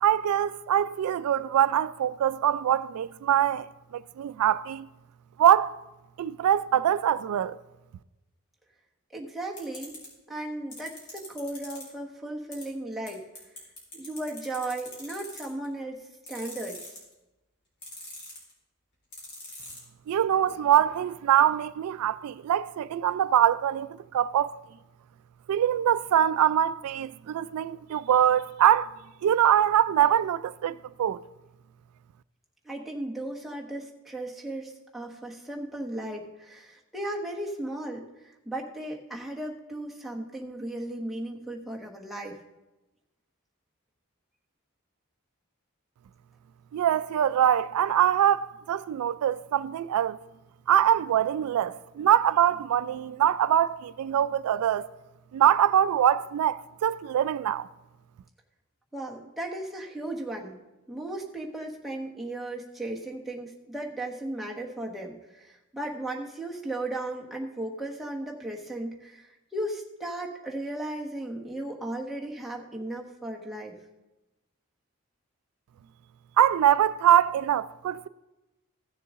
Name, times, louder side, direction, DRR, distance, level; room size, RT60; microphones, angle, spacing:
voice 1, 0.0-3.7 3.9-4.9 5.4-5.7 6.2-7.6 20.1-24.6 25.5-28.9 29.2-31.2 46.7-50.2 50.7-54.9 55.3-57.7 76.4-78.1, right 10 dB, 85° right, 0.3 m, -23 dB
voice 2, 9.1-10.0 10.3-13.2 13.9-16.9 32.6-42.4 58.9-60.6 60.9-73.8, right 1 dB, ahead, 1.1 m, -36 dB
sound 1, 9.6-10.1 10.7-11.8 12.5-12.6 13.1-13.2 13.4-15.7 16.3-17.1 17.8-18.5 19.1-19.8, left 2 dB, 50° left, 3.9 m, -42 dB
15.5 x 6.8 x 3.6 m
head